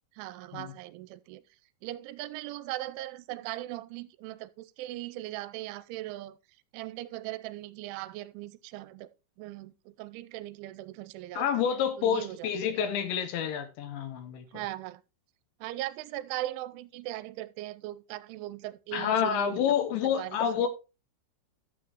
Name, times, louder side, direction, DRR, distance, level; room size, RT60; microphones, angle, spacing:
voice 1, 0.2-1.4 1.8-6.4 6.7-9.1 9.4-11.7 12.0-12.5 14.5-15.0 15.6-19.6 20.2-20.7, right 16 dB, 85° right, 3.0 m, -39 dB
voice 2, 11.4-14.5 18.9-20.7, left 8 dB, 75° left, 3.0 m, -28 dB
12.5 x 8.2 x 3.0 m
omnidirectional pair, 5.5 m